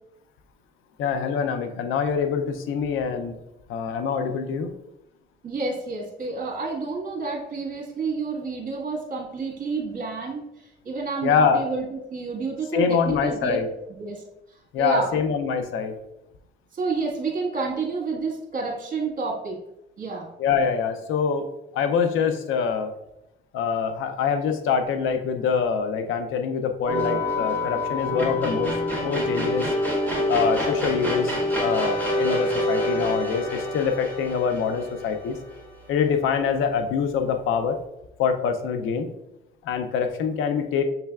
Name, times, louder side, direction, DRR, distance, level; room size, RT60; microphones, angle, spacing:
voice 1, 1.0-3.4 3.7-4.7 11.2-11.6 12.7-13.7 14.7-15.9 20.4-21.5 21.7-22.9 23.5-28.7 29.0-29.7 30.3-31.4 31.6-35.4 35.9-37.8 38.2-39.1 39.6-40.8, left 6 dB, 85° left, 7 dB, 0.5 m, -24 dB
voice 2, 5.4-10.4 10.8-13.6 14.0-14.2 14.8-15.2 16.7-19.6 20.0-20.3, right 4 dB, 45° right, -1 dB, 1.6 m, -29 dB
sound 1, 26.9-36.1, left 1 dB, 10° left, 1.4 m, -26 dB
6.7 x 3.2 x 2.3 m, 0.87 s
cardioid pair, 90°, 20 cm